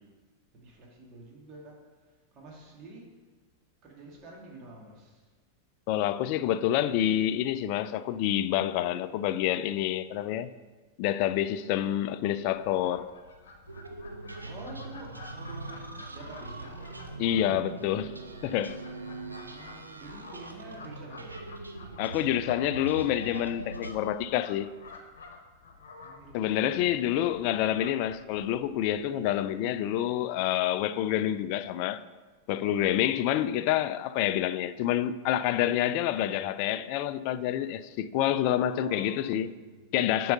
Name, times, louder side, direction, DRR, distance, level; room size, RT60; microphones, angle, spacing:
voice 1, 0.5-3.1 3.8-5.3 14.4-16.8 19.4-21.5 26.0-27.0 33.3-33.6 38.7-39.9, right 2 dB, 35° right, 2.1 m, -48 dB
voice 2, 5.9-10.5 11.0-13.1 17.2-18.1 18.4-18.8 22.0-24.7 26.3-32.0 32.5-39.5 39.9-40.3, left 11 dB, 45° left, 0.3 m, -28 dB
Fowl, 12.5-29.7, left 3 dB, 60° left, 1.0 m, -51 dB
sound 1, 13.7-24.0, right 2 dB, 80° right, 0.7 m, -42 dB
7.7 x 4.6 x 5.4 m
figure-of-eight pair, 90°, 0 cm